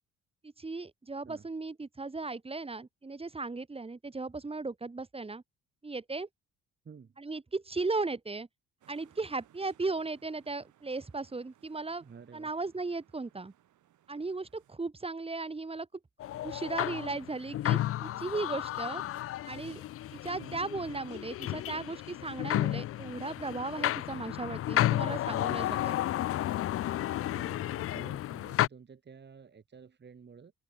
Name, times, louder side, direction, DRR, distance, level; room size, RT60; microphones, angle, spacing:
voice 1, 0.4-5.4 5.8-6.3 7.2-8.5 8.9-12.0 12.3-13.5 14.1-15.9 16.4-19.0 19.5-19.8 20.1-26.0, right 3 dB, 20° right, 1.4 m, -36 dB
voice 2, 6.8-7.2 12.0-12.5 20.4-20.7 27.2-30.5, right 6 dB, 35° right, 2.1 m, -52 dB
sound 1, 8.8-14.8, right 12 dB, 75° right, 4.8 m, -65 dB
sound 2, 16.2-28.7, left 13 dB, 50° left, 0.4 m, -32 dB
cardioid pair, 90°, 30 cm